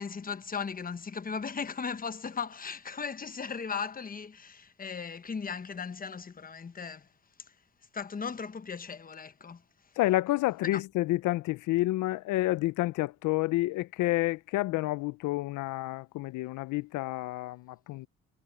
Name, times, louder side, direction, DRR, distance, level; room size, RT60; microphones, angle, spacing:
voice 1, 0.0-7.1 7.9-9.6 10.7-10.8, left 6 dB, 30° left, 1.0 m, -37 dB
voice 2, 10.0-18.1, left 17 dB, 90° left, 0.5 m, -29 dB
cardioid pair, 90°, 30 cm